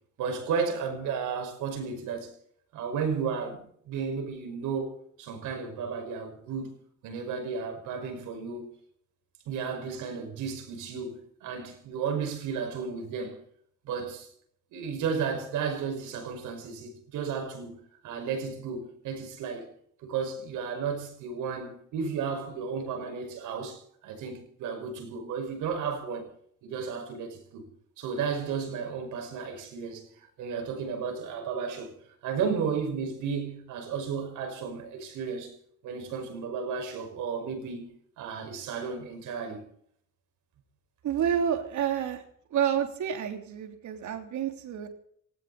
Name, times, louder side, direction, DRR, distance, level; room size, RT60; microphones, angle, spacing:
voice 1, 0.2-2.3 2.7-6.7 7.0-8.7 9.5-13.4 13.8-14.3 14.7-19.7 20.0-26.3 26.6-27.7 28.0-31.9 32.2-35.5 35.8-39.6, right 6 dB, 90° right, 5.7 m, -33 dB
voice 2, 41.0-42.2 42.5-44.9, right 9 dB, 75° right, 3.4 m, -29 dB
18.5 x 18.0 x 4.2 m
cardioid pair, 90°, 30 cm